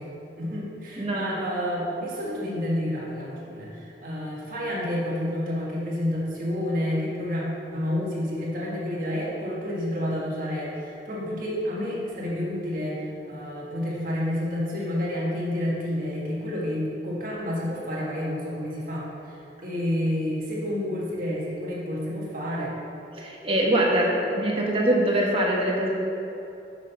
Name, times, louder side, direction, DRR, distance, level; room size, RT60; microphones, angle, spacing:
voice 1, 0.0-7.4 7.7-22.7, left 1 dB, 50° right, -5 dB, 1.6 m, -29 dB
voice 2, 1.0-1.3 23.1-26.0, right 1 dB, 30° right, -2 dB, 1.1 m, -23 dB
6.5 x 6.1 x 5.6 m, 2.9 s
head